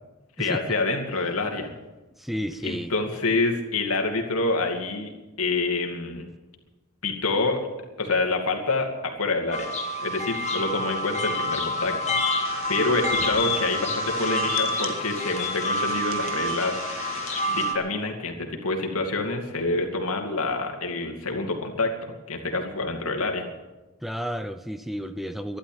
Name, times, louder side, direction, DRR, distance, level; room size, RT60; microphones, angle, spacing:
voice 1, 0.4-1.7 2.6-5.1 5.4-6.3 7.0-7.6 8.0-9.7 10.0-16.8 17.5-23.5, left 3 dB, 85° left, 3 dB, 2.6 m, -27 dB
voice 2, 2.2-2.9 24.0-25.6, equal, ahead, 11 dB, 0.5 m, -32 dB
sound 1, 9.5-17.7, left 1 dB, 35° left, 1.9 m, -28 dB
sound 2, 12.4-17.5, right 5 dB, 65° right, 1.5 m, -40 dB
13.0 x 11.5 x 8.9 m, 1.1 s
head